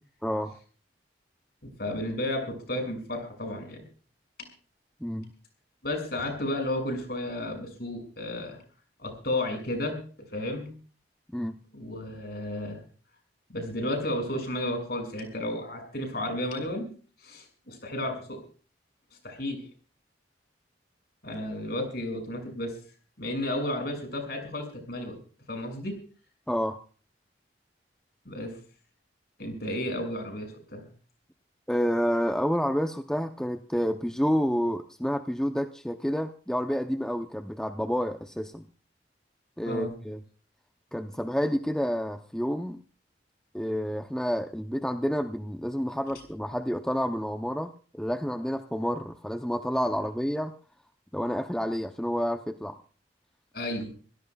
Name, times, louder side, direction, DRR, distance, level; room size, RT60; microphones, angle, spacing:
voice 1, 0.2-0.6 5.0-5.3 11.3-11.6 26.5-26.8 31.7-38.7 39.6-40.2 40.9-42.8 43.5-50.5 51.1-52.8, equal, 5° left, 5 dB, 0.6 m, -29 dB
voice 2, 1.6-3.8 4.4-4.5 5.8-8.6 9.0-10.0 10.3-10.7 11.7-12.8 13.5-16.9 17.2-18.4 19.2-19.6 21.2-22.7 23.2-25.2 25.5-25.9 28.2-28.5 29.4-30.9 39.6-39.9 53.5-53.9, left 1 dB, 55° left, 4 dB, 6.2 m, -32 dB
25.5 x 16.5 x 2.3 m, 0.39 s
head